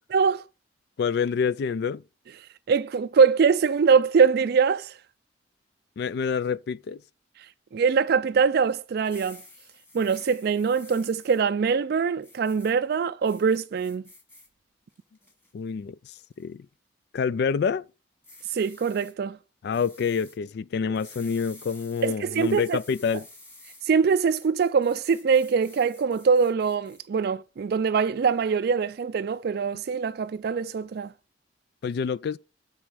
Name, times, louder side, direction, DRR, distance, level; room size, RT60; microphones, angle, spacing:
voice 1, 0.1-0.4 2.7-5.0 7.7-9.4 9.9-14.0 18.5-19.4 22.0-22.8 23.9-31.1, right 5 dB, 55° right, 0.4 m, -23 dB
voice 2, 1.0-2.0 6.0-7.0 15.5-16.7 17.1-17.8 19.6-23.3 31.8-32.4, left 6 dB, 60° left, 0.3 m, -27 dB
sound 1, 9.0-11.4 12.2-12.7 13.2-14.5 14.9-15.5 16.1-16.4 18.2-19.1 19.7-20.4 20.9-23.8 24.3-27.0, left 2 dB, 10° left, 2.3 m, -51 dB
9.5 x 4.3 x 6.2 m
head